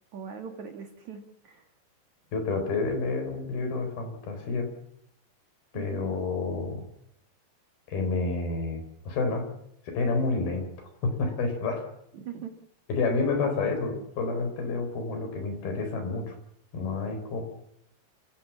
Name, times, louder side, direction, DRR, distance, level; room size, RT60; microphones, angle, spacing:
voice 1, 0.1-1.7 5.7-6.1 12.1-12.5, right 7 dB, 55° right, 4 dB, 2.5 m, -41 dB
voice 2, 2.3-4.7 5.7-6.9 7.9-9.5 9.9-11.9 12.9-16.4 16.7-17.4, left 3 dB, 65° left, 6 dB, 5.9 m, -29 dB
28.5 x 16.0 x 7.3 m, 0.74 s
omnidirectional pair, 4.7 m